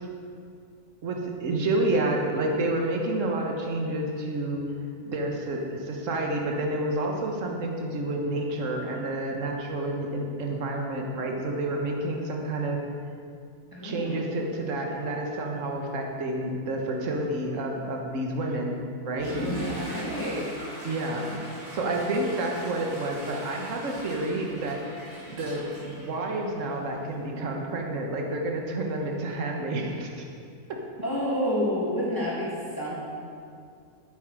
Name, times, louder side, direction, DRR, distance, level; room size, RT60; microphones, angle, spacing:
voice 1, 1.0-4.6 5.1-12.8 13.8-18.8 19.0-19.4 20.8-21.4 21.7-24.8 25.3-30.2, right 2 dB, 55° right, 1 dB, 1.6 m, -29 dB
voice 2, 13.7-14.2 19.3-20.6 31.0-32.9, equal, 15° left, -7 dB, 2.1 m, -29 dB
Water / Toilet flush, 19.1-26.8, equal, 75° right, 4.0 m, -39 dB
11.5 x 9.4 x 4.9 m, 2.3 s
omnidirectional pair, 1.6 m